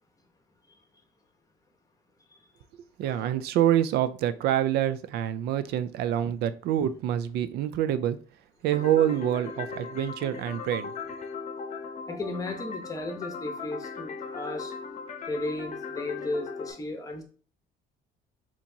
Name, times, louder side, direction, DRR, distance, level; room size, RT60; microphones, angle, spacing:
voice 1, 3.0-8.2 8.6-10.9, right 11 dB, 75° right, 13 dB, 0.4 m, -26 dB
sound 1, 8.7-16.7, left 5 dB, 45° left, 0.8 m, -38 dB
voice 2, 12.1-14.7 15.3-17.2, left 2 dB, 20° left, 4 dB, 0.9 m, -35 dB
4.3 x 2.9 x 2.7 m, 0.40 s
cardioid pair, 110°, 17 cm